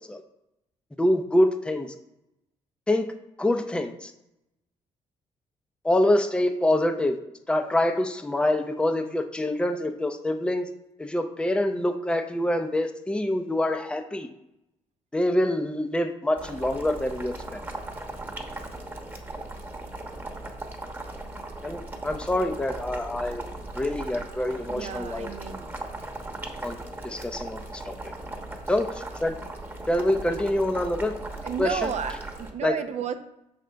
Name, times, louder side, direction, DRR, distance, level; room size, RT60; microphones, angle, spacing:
voice 1, 1.0-1.9 2.9-3.1 3.4-4.1 5.8-7.2 7.5-10.7 11.0-14.3 15.1-17.6 21.6-23.4 23.7-25.3 26.6-26.8 27.0-27.9 28.7-29.4 29.9-31.1 31.6-31.9 32.6-32.8, left 1 dB, 5° left, 6 dB, 0.5 m, -25 dB
Boiling, 16.4-32.5, right 2 dB, 15° right, 1.1 m, -38 dB
voice 2, 24.7-25.7 31.4-33.2, right 7 dB, 60° right, 8 dB, 0.6 m, -32 dB
6.3 x 5.1 x 3.4 m, 0.86 s
cardioid pair, 85°, 13 cm